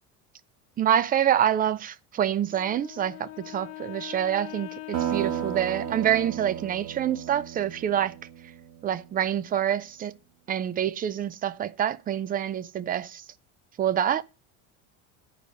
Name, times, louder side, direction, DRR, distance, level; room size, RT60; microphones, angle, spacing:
voice 1, 0.8-8.1 8.8-10.1 10.5-13.2 13.8-14.2, right 10 dB, 25° right, 0.5 m, -26 dB
Wind instrument woodwind instrument, 2.5-6.7, left 20 dB, 45° left, 0.8 m, -42 dB
sound 1, 4.9-9.2, right 11 dB, 80° right, 1.6 m, -34 dB
9.9 x 4.8 x 6.8 m
supercardioid pair, 135°, 37 cm